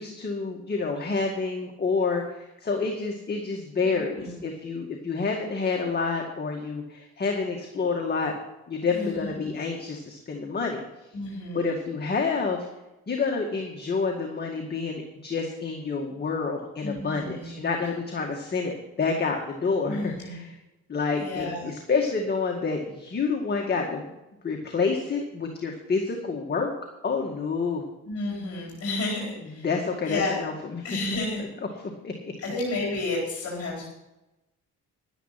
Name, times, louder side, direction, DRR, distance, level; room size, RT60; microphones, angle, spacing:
voice 1, 0.0-8.3 8.7-10.8 11.5-12.7 13.1-20.6 20.9-24.1 24.4-26.7 27.0-27.8 29.5-30.9 32.0-32.4, left 4 dB, 35° left, 1 dB, 1.9 m, -28 dB
voice 2, 8.9-9.4 11.1-11.7 16.8-17.5 19.8-20.4 21.2-21.7 28.1-29.7 30.1-30.5 30.8-31.4 32.4-33.9, left 2 dB, 50° left, -4 dB, 4.3 m, -31 dB
11.5 x 10.0 x 5.8 m, 0.95 s
cardioid pair, 90°, 30 cm